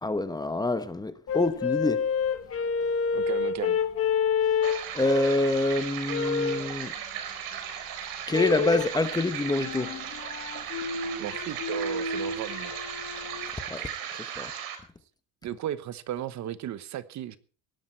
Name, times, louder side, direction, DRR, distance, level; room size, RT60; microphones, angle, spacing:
voice 1, 0.0-2.1 4.9-6.9 8.3-10.0 13.7-13.9 14.4-14.5, left 2 dB, 10° left, 1.0 m, -26 dB
sound 1, 1.3-5.5 6.1-6.7 8.3-9.0 9.5-13.5, left 6 dB, 40° left, 1.5 m, -29 dB
voice 2, 3.1-3.8 11.2-12.7 15.4-17.4, right 11 dB, 50° right, 1.1 m, -35 dB
sound 2, 4.6-14.8, right 9 dB, 80° right, 4.4 m, -37 dB
17.5 x 12.0 x 4.5 m
cardioid pair, 135°, 35 cm